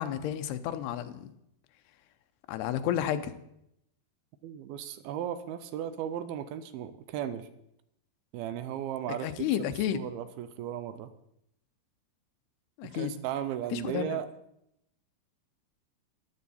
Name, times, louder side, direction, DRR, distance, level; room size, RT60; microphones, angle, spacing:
voice 1, 0.0-1.3 2.5-3.3 9.2-10.0 12.8-13.1 13.7-14.2, left 10 dB, 90° left, 10 dB, 2.8 m, -31 dB
voice 2, 4.4-7.5 8.3-9.5 9.9-11.1 12.8-14.3, right 10 dB, 80° right, 12 dB, 2.4 m, -36 dB
14.0 x 11.0 x 4.2 m, 0.78 s
omnidirectional pair, 4.6 m